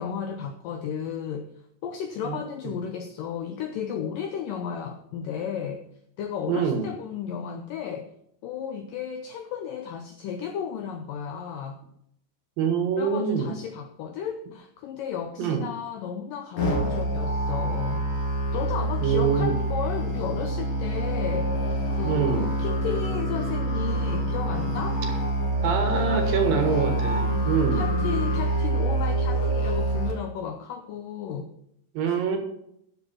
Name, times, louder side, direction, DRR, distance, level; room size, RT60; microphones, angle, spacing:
voice 1, 0.0-1.5 1.8-5.8 6.2-8.1 8.4-11.8 13.0-18.0 18.5-25.0 25.9-26.4 27.1-31.5, left 7 dB, 80° left, 6 dB, 2.0 m, -34 dB
voice 2, 6.5-6.9 12.6-13.5 15.4-15.7 19.0-19.6 22.0-22.5 25.6-27.8 31.9-32.4, right 6 dB, 65° right, 5 dB, 2.9 m, -25 dB
Musical instrument, 16.6-30.1, right 1 dB, 45° left, 2.9 m, -26 dB
10.5 x 7.0 x 6.1 m, 0.73 s
omnidirectional pair, 4.9 m